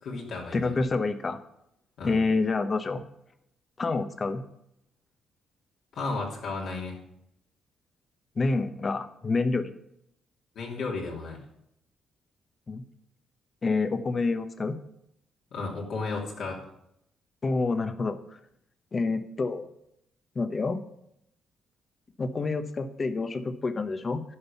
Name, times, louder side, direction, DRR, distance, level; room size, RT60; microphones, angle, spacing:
voice 1, 0.0-0.8 2.0-2.2 5.9-7.0 10.5-11.4 15.5-16.6, left 3 dB, 70° left, -2 dB, 3.0 m, -33 dB
voice 2, 0.5-1.4 2.0-3.0 3.8-4.4 8.4-9.7 12.7-12.8 13.6-14.8 17.4-18.2 18.9-19.7 20.3-20.8 22.2-24.2, left 3 dB, 35° left, 9 dB, 1.0 m, -28 dB
11.0 x 5.4 x 7.0 m, 0.77 s
cardioid pair, 90°, 0 cm